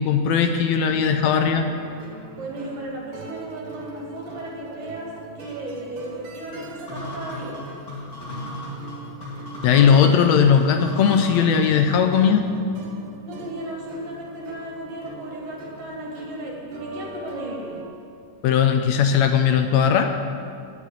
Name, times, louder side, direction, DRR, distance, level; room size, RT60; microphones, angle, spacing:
voice 1, 0.0-1.7 9.6-12.5 18.4-20.1, left 7 dB, 75° left, 6 dB, 1.7 m, -18 dB
sound 1, 0.7-17.8, right 3 dB, 85° right, 3.0 m, -41 dB
voice 2, 2.4-5.1 5.4-7.6 13.2-17.9, right 1 dB, 55° right, -3 dB, 3.5 m, -35 dB
sound 2, 6.9-12.4, left 1 dB, 30° left, 2.1 m, -36 dB
9.3 x 8.1 x 8.7 m, 2.3 s
omnidirectional pair, 3.7 m